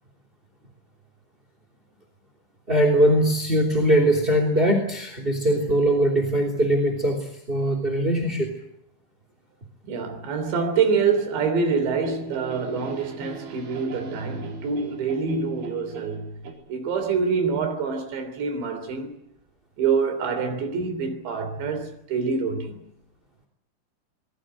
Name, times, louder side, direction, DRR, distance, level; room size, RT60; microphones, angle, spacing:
voice 1, 2.7-8.5, right 1 dB, 15° right, 2.4 m, -21 dB
voice 2, 9.9-16.4 16.7-19.1 19.8-22.8, right 5 dB, 70° right, 5.5 m, -26 dB
sound 1, 11.0-16.5, right 6 dB, 85° right, 6.6 m, -40 dB
25.0 x 21.0 x 7.9 m
omnidirectional pair, 5.4 m